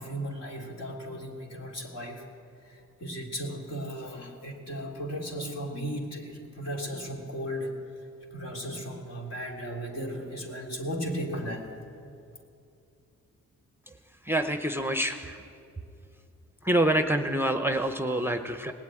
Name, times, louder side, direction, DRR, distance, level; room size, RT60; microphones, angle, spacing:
voice 1, 0.0-2.2 2.6-7.7 8.3-11.7, equal, 60° left, -1 dB, 3.1 m, -36 dB
voice 2, 14.3-15.4 16.6-18.7, right 1 dB, 10° right, 7 dB, 0.8 m, -26 dB
19.0 x 8.1 x 9.0 m, 2.6 s
cardioid pair, 70°, 29 cm